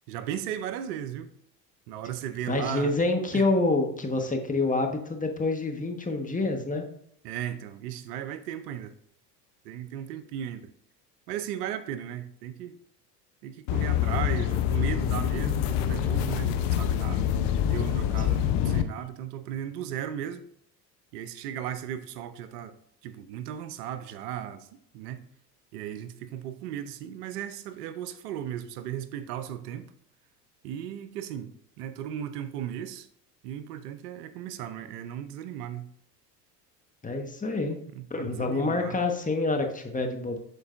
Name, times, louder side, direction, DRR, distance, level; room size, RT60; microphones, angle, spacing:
voice 1, 0.1-1.3 1.9-3.0 3.3-3.5 7.2-8.9 9.6-10.7 11.3-12.8 13.4-17.3 17.7-20.4 21.1-22.7 23.0-24.7 24.9-25.2 25.7-29.9 30.6-33.1 33.4-35.9 37.9-39.0, right 10 dB, 70° right, 0.7 m, -36 dB
voice 2, 2.5-6.8 18.3-18.4 37.0-37.8 38.1-40.4, left 2 dB, 15° left, 1.3 m, -27 dB
sound 1, 13.7-18.8, left 10 dB, 55° left, 0.8 m, -26 dB
11.5 x 4.6 x 2.6 m
hypercardioid pair, 70°, 49 cm